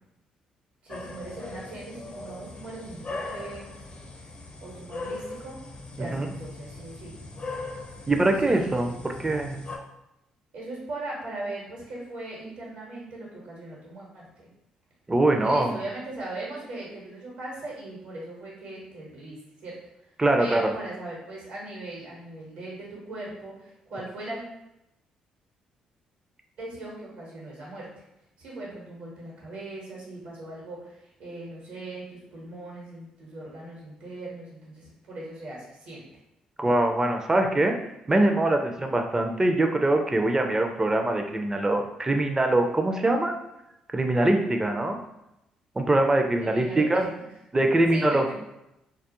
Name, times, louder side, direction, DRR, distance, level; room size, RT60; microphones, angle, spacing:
voice 1, 0.8-3.9 4.6-5.6 6.0-7.2 8.4-8.9 10.5-14.5 15.3-20.1 20.4-24.4 26.6-27.9 28.4-36.0 46.4-47.0 47.9-48.3, right 2 dB, 75° right, -5 dB, 1.0 m, -39 dB
sound 1, 0.9-9.8, left 2 dB, 35° left, 0.5 m, -39 dB
voice 2, 8.1-8.9 9.2-9.6 15.1-15.8 20.2-20.7 36.6-37.7 38.1-43.3 43.9-45.0 45.8-47.1 47.5-48.3, right 2 dB, 20° right, 4 dB, 0.4 m, -23 dB
2.3 x 2.1 x 2.9 m, 0.88 s
hypercardioid pair, 50°, 3 cm